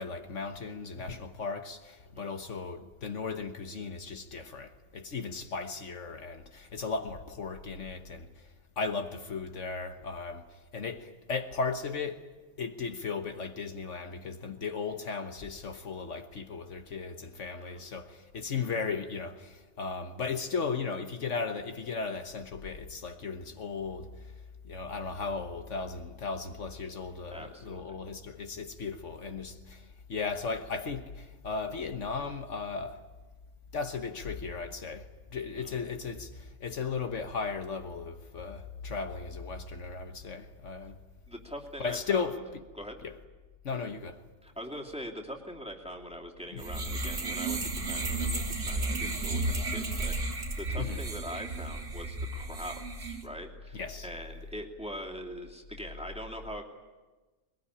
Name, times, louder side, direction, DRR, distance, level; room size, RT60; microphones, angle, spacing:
voice 1, 0.0-8.4 8.8-12.3 12.6-24.1 24.6-33.0 33.7-41.0 41.8-42.6 43.0-43.2 43.6-44.2 46.5-46.6 50.8-51.0 53.7-54.1, left 5 dB, 70° left, 1.5 m, -36 dB
voice 2, 17.5-18.0 27.3-28.0 35.6-35.8 41.3-42.3 42.7-42.9 44.4-56.6, equal, 5° right, 2.7 m, -43 dB
sound 1, 46.6-53.2, right 2 dB, 75° right, 2.7 m, -33 dB
22.0 x 21.0 x 10.0 m
omnidirectional pair, 1.3 m